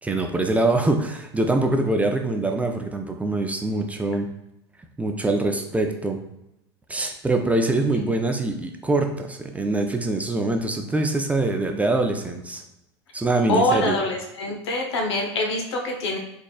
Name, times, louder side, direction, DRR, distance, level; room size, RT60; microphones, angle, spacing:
voice 1, 0.0-4.3 5.0-6.2 6.9-12.6 13.1-13.9, right 2 dB, 10° right, 3 dB, 0.5 m, -24 dB
voice 2, 13.5-16.2, left 2 dB, 75° left, 2 dB, 0.9 m, -24 dB
4.0 x 3.5 x 2.3 m, 0.85 s
hypercardioid pair, 90°, 14 cm